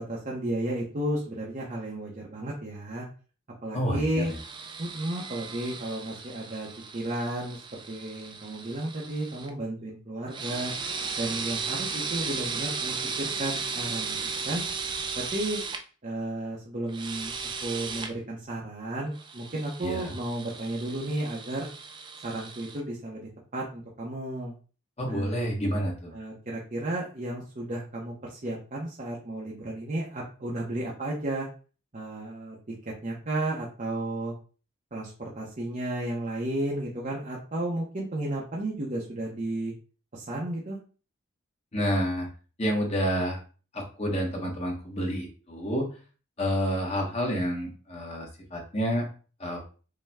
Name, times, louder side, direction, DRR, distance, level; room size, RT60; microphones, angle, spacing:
voice 1, 0.0-3.1 3.6-4.3 4.8-6.7 6.9-7.6 7.9-10.7 11.2-14.2 14.4-14.6 15.1-15.6 16.0-17.3 17.6-21.7 22.2-24.5 25.1-25.4 26.1-31.5 31.9-32.6 33.0-34.3 34.9-39.7 40.1-40.8, right 1 dB, 40° right, -3 dB, 0.7 m, -33 dB
voice 2, 3.7-4.4 19.8-20.1 25.0-26.1 41.7-42.3 42.6-43.4 43.7-45.9 46.4-49.1 49.4-49.6, equal, 30° left, 0 dB, 1.0 m, -29 dB
sound 1, 4.2-9.5 10.3-15.8 16.9-18.1 19.1-22.8, right 5 dB, 20° right, 0.3 m, -36 dB
5.4 x 2.2 x 3.5 m, 0.37 s
head